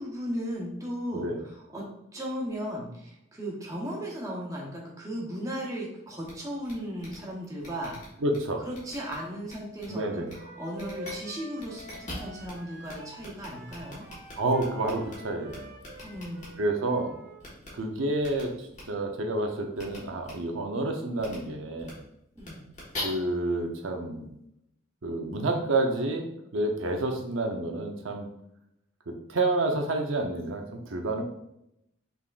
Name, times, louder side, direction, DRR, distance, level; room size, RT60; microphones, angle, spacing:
voice 1, 0.0-1.9 2.1-8.0 8.6-14.0 16.0-16.6 22.4-22.6, equal, 15° right, -3 dB, 0.9 m, -36 dB
sound 1, 6.2-6.3 6.6-6.7 7.0-7.2 7.6-8.4 8.7-9.1 9.5-9.8 10.3-10.4 10.7-11.1 11.6-12.5 12.8-12.9 13.2-15.1 15.5-16.5 17.4-17.7 18.2-18.4 18.7-18.8 19.7-20.0 20.2-20.3 21.2-21.4 21.8-21.9 22.4-23.0, left 2 dB, 35° left, 1.5 m, -42 dB
voice 2, 8.2-8.6 9.9-10.3 14.4-15.8 16.6-17.1 17.7-22.0 23.0-24.3 25.0-26.3 26.5-28.3 29.3-31.2, right 2 dB, 85° right, 3 dB, 0.7 m, -29 dB
Wind instrument woodwind instrument, 9.9-17.4, equal, 55° right, 0.9 m, -47 dB
5.4 x 3.6 x 2.5 m, 0.80 s
head